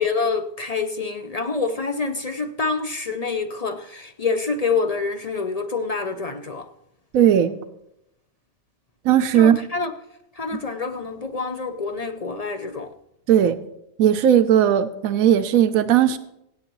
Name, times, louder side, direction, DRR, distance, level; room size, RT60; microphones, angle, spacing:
voice 1, 0.0-6.7 9.3-9.9 10.4-12.9, left 4 dB, 40° left, 0.5 m, -26 dB
voice 2, 7.1-7.5 9.0-9.6 10.5-10.6 13.3-13.6 14.0-16.2, right 10 dB, 85° right, 1.1 m, -17 dB
24.0 x 9.0 x 3.1 m
omnidirectional pair, 1.4 m